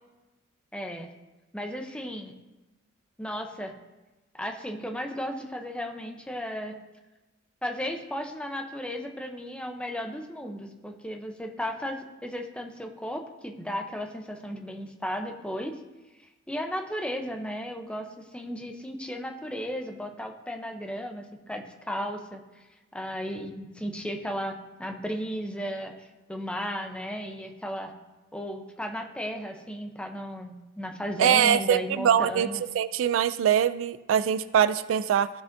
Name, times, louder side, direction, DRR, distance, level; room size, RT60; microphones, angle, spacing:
voice 1, 0.7-1.1 1.5-2.3 3.2-3.7 4.3-6.8 7.6-15.7 16.5-22.6 22.9-27.9 28.3-32.6, equal, 5° left, 3 dB, 0.6 m, -35 dB
voice 2, 31.2-32.5 32.7-35.3, right 9 dB, 75° right, 14 dB, 0.3 m, -23 dB
14.5 x 5.7 x 2.6 m, 1.1 s
head